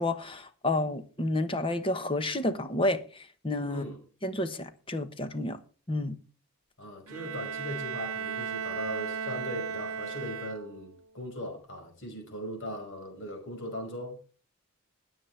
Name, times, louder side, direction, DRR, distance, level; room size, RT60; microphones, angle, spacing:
voice 1, 0.0-3.0 3.4-3.8 4.2-5.6 5.9-6.2, left 2 dB, 25° left, 1.1 m, -30 dB
voice 2, 3.7-4.0 6.8-14.2, equal, 60° left, 5.1 m, -39 dB
Bowed string instrument, 7.1-11.0, right 6 dB, 75° right, 0.8 m, -36 dB
20.5 x 7.4 x 3.3 m
head